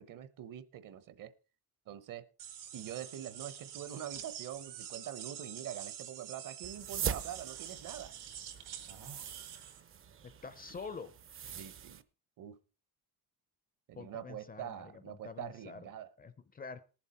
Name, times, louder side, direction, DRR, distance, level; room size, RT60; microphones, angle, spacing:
voice 1, 0.0-1.3 1.9-2.2 2.7-8.1 11.5-12.0 12.4-12.6 13.9-16.1, right 10 dB, 55° right, 14 dB, 0.9 m, -44 dB
sound 1, 2.4-9.8, right 9 dB, 80° right, 2.6 m, -47 dB
sound 2, 6.6-12.0, right 8 dB, 35° right, 0.6 m, -43 dB
voice 2, 10.2-11.1 14.0-15.9 16.2-16.8, left 5 dB, 25° left, 14 dB, 0.5 m, -46 dB
19.0 x 7.3 x 4.2 m, 0.34 s
cardioid pair, 175°, 39 cm